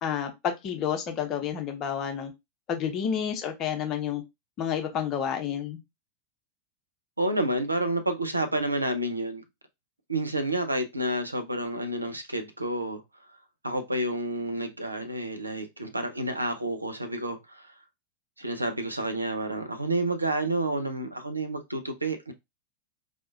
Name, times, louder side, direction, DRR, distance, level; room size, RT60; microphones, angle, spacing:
voice 1, 0.0-2.3 2.7-4.2 4.6-5.8, left 8 dB, 35° left, 0.8 m, -30 dB
voice 2, 7.2-9.4 10.1-13.0 13.6-17.7 18.4-22.3, right 1 dB, 85° right, 0.6 m, -29 dB
4.8 x 2.5 x 2.5 m
figure-of-eight pair, 90°, 0 cm